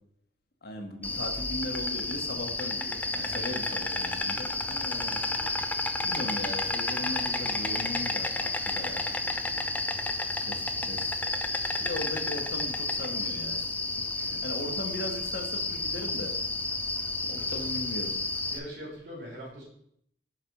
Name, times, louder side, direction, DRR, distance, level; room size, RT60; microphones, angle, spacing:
voice 1, 0.6-5.2 6.0-9.0 10.4-11.2 11.8-13.8 14.2-16.3 17.3-18.2, left 1 dB, 55° left, 3 dB, 1.0 m, -38 dB
Insect, 1.0-18.6, left 2 dB, 10° left, 0.4 m, -31 dB
voice 2, 3.1-3.5 18.5-19.6, equal, 70° right, -2 dB, 2.8 m, -42 dB
5.0 x 4.0 x 5.8 m, 0.69 s
head